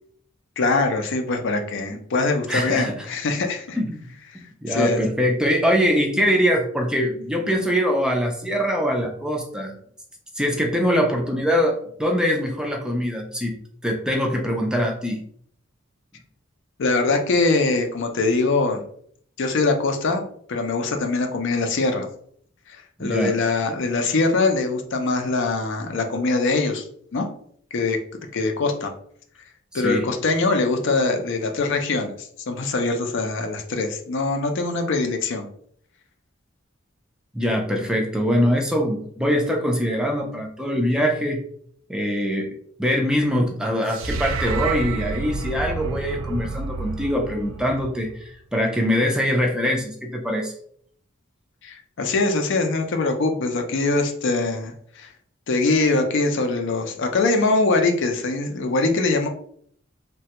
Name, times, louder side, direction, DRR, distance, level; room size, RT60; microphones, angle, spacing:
voice 1, 0.6-3.8 4.7-5.0 16.8-18.8 19.4-22.1 22.7-26.9 27.1-27.3 27.7-28.0 28.3-28.9 29.7-32.1 32.5-35.5 51.6-55.1 55.5-59.3, left 3 dB, 65° left, 5 dB, 0.5 m, -23 dB
voice 2, 2.5-3.1 3.8-4.0 4.6-9.7 10.4-13.6 13.8-15.2 23.0-23.4 29.7-30.1 37.3-41.4 41.9-50.5, equal, 5° right, 1 dB, 0.4 m, -23 dB
sound 1, 43.9-48.3, right 3 dB, 70° right, 0.4 m, -29 dB
3.2 x 2.2 x 2.8 m, 0.62 s
head